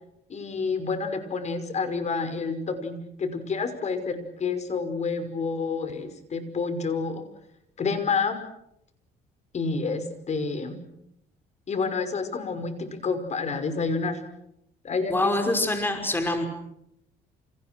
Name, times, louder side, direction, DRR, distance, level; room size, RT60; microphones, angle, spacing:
voice 1, 0.3-7.2 7.8-8.4 9.5-10.8 11.7-14.2 14.8-15.3, left 4 dB, 40° left, 9 dB, 5.7 m, -29 dB
voice 2, 15.1-16.5, left 1 dB, 10° left, 5 dB, 5.6 m, -25 dB
29.5 x 29.5 x 6.3 m, 0.78 s
cardioid pair, 110°, 17 cm